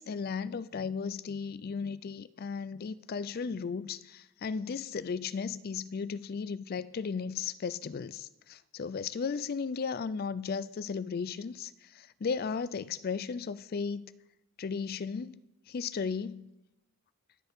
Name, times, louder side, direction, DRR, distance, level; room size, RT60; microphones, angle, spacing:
voice 1, 0.0-11.7 12.2-14.1 14.6-15.4 15.7-16.4, left 5 dB, 45° left, 0.4 m, -35 dB
21.5 x 8.1 x 3.6 m
head